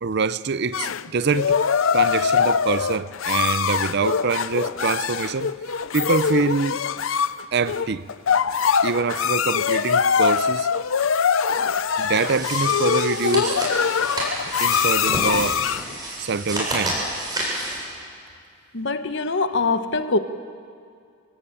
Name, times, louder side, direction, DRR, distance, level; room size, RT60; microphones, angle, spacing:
voice 1, 0.0-1.5 1.9-5.5 5.9-6.8 7.5-8.0 8.8-10.7 12.0-13.6 14.6-15.6 16.2-17.0, right 4 dB, 55° right, 0.6 m, -25 dB
sound 1, 0.7-15.9, left 7 dB, 75° left, 0.6 m, -22 dB
sound 2, 11.9-17.8, right 1 dB, 20° right, 7.7 m, -30 dB
voice 2, 18.7-20.2, left 3 dB, 60° left, 1.1 m, -23 dB
27.0 x 17.5 x 8.8 m
head